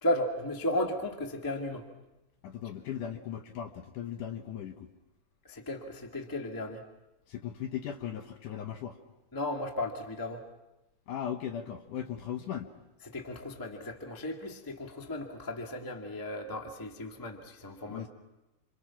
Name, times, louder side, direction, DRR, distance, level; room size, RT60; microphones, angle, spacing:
voice 1, 0.0-1.9 5.4-6.8 9.3-10.4 13.0-18.1, left 1 dB, 20° left, 2 dB, 0.5 m, -35 dB
voice 2, 2.4-4.9 7.3-9.0 11.1-12.7 17.9-18.1, left 9 dB, 65° left, 6 dB, 2.2 m, -38 dB
28.5 x 26.5 x 6.0 m, 1.0 s
omnidirectional pair, 4.7 m